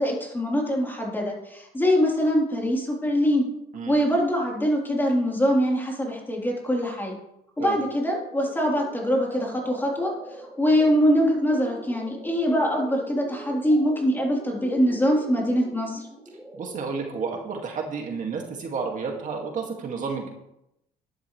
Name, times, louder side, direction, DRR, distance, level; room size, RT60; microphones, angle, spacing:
voice 1, 0.0-3.5 3.9-7.2 7.6-16.1, equal, 10° left, -2 dB, 3.8 m, -23 dB
sound 1, 7.6-17.6, right 1 dB, 5° right, 4.7 m, -43 dB
voice 2, 16.5-20.3, right 5 dB, 50° right, 1 dB, 2.3 m, -31 dB
11.5 x 11.5 x 3.3 m, 0.82 s
cardioid pair, 110°, 17 cm